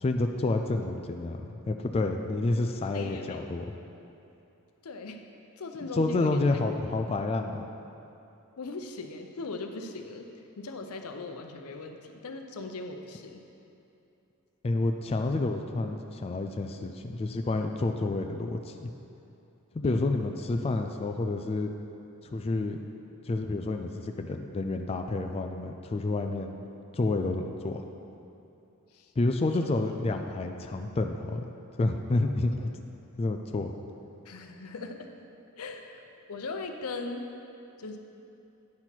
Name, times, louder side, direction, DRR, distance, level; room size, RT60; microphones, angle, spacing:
voice 1, 0.0-3.7 5.9-7.6 14.6-18.9 19.7-21.7 22.2-22.8 23.3-26.6 26.9-27.8 29.2-31.5 31.8-32.7 33.2-33.7, left 2 dB, 25° left, 5 dB, 0.3 m, -29 dB
voice 2, 2.9-3.4 4.8-5.2 5.6-6.6 8.6-10.3 10.6-13.4 19.8-20.1 28.9-29.1 29.4-29.5 32.6-32.7 34.2-35.1 35.6-36.0 36.3-37.2 37.8-38.0, left 3 dB, 90° left, 5 dB, 0.7 m, -39 dB
9.7 x 5.9 x 4.5 m, 2.8 s
head